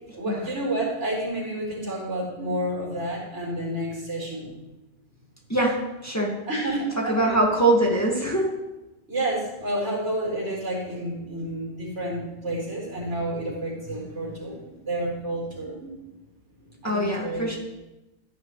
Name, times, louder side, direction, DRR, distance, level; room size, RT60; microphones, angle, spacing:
voice 1, 0.1-4.6 6.5-7.3 9.1-15.9 16.6-17.5, right 1 dB, 80° right, -2 dB, 4.7 m, -30 dB
voice 2, 5.5-6.4 7.0-8.5 16.8-17.6, right 1 dB, 15° left, -3 dB, 2.0 m, -23 dB
15.0 x 10.5 x 3.2 m, 1.0 s
omnidirectional pair, 1.2 m